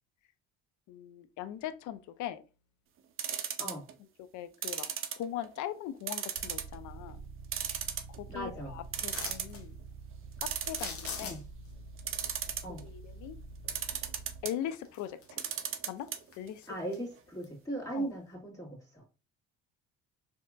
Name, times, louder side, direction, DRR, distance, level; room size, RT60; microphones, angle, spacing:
voice 1, 0.9-2.4 3.6-3.7 4.3-4.9 5.2-7.2 8.2-9.8 10.7-11.4 12.8-13.4 14.4-15.2 15.9-16.1 16.4-16.6 17.9-18.1, left 11 dB, 65° left, 0.5 m, -40 dB
sound 1, 3.2-3.9 4.6-5.6 6.1-6.7 7.1-7.2 7.5-8.3 8.7-8.8 8.9-9.6 10.4-11.3 12.0-12.8 13.7-14.5 15.3-16.2 16.5-16.6 16.8-16.9, right 9 dB, 40° right, 0.6 m, -35 dB
sound 2, 6.3-14.4, right 4 dB, 20° right, 1.6 m, -47 dB
voice 2, 8.3-8.8 11.2-11.4 12.6-12.8 16.7-19.0, right 1 dB, 10° left, 1.9 m, -38 dB
sound 3, 9.0-9.6 10.6-11.7 14.2-14.3 14.8-15.5 15.9-17.0 17.4-17.5, left 5 dB, 45° left, 0.9 m, -42 dB
4.4 x 2.9 x 2.4 m
cardioid pair, 100°, 32 cm